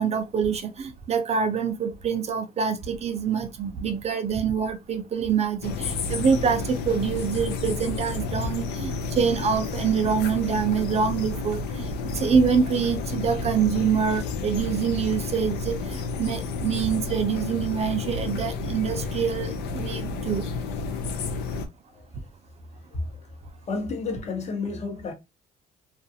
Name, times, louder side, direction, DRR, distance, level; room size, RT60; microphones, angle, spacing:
voice 1, 0.0-11.9 12.1-20.5, right 6 dB, 40° right, 0.5 m, -25 dB
sound 1, 5.6-21.7, left 4 dB, 75° left, 0.5 m, -31 dB
voice 2, 23.7-25.1, left 3 dB, 40° left, 0.8 m, -31 dB
2.4 x 2.4 x 2.7 m
cardioid pair, 110°, 17 cm